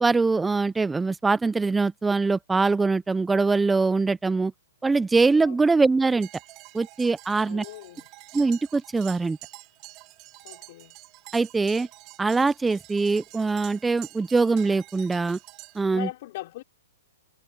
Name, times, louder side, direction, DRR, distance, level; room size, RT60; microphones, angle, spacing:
voice 1, 0.0-4.5 4.8-6.3 6.7-7.6 8.3-9.4 11.3-11.9 12.2-15.4 15.7-16.1, right 3 dB, 5° right, 0.5 m, -23 dB
sound 1, 6.2-15.8, right 21 dB, 30° right, 2.8 m, -47 dB
voice 2, 7.5-8.1 10.4-11.0 15.9-16.6, left 17 dB, 45° left, 4.7 m, -39 dB
hypercardioid pair, 155°, 0 cm